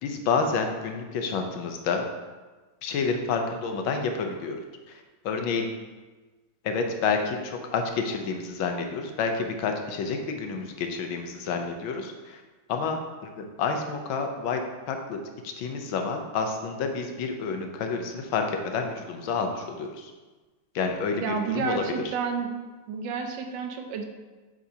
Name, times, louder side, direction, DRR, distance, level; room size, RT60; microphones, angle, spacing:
voice 1, 0.0-2.0 2.8-4.6 4.9-5.7 6.6-12.4 12.7-13.0 13.6-14.6 14.9-15.2 15.4-20.1 20.7-22.1, left 5 dB, 85° left, 4 dB, 1.6 m, -29 dB
voice 2, 21.2-22.6 22.9-24.1, right 5 dB, 75° right, 4 dB, 1.4 m, -30 dB
7.6 x 6.5 x 2.8 m, 1.3 s
omnidirectional pair, 2.1 m